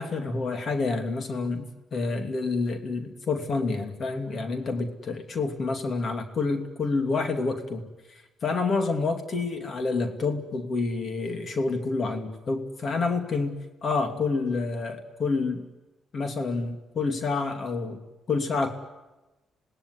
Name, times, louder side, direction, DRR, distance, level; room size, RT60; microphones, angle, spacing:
voice 1, 0.0-7.8 8.4-13.5 13.8-15.6 16.1-18.0 18.3-18.7, left 3 dB, 50° left, 6 dB, 2.7 m, -28 dB
26.5 x 18.0 x 9.7 m, 1.1 s
cardioid pair, 90°, 0 cm